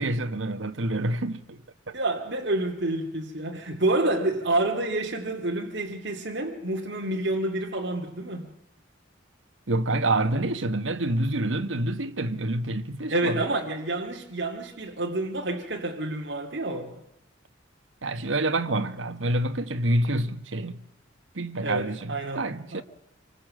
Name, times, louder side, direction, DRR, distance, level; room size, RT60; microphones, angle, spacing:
voice 1, 0.0-1.6 1.9-2.0 9.7-13.4 18.0-20.8 21.3-22.8, right 1 dB, 85° right, 1.4 m, -27 dB
voice 2, 1.9-8.5 13.1-17.0 21.6-22.5 22.7-22.8, right 2 dB, 65° right, 2.3 m, -28 dB
26.5 x 20.5 x 7.7 m
head